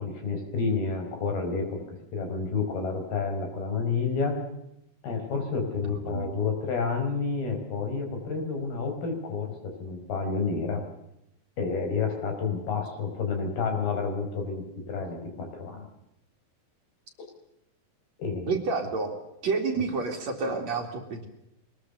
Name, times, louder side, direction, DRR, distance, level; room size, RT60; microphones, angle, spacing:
voice 1, 0.0-4.3 5.0-9.5 9.8-10.8 11.6-15.9 18.2-18.5, left 4 dB, 65° left, 4 dB, 6.8 m, -30 dB
voice 2, 5.8-6.4 18.5-19.2 19.4-21.3, right 4 dB, 45° right, 3 dB, 3.3 m, -29 dB
22.5 x 21.0 x 6.9 m, 0.83 s
omnidirectional pair, 4.7 m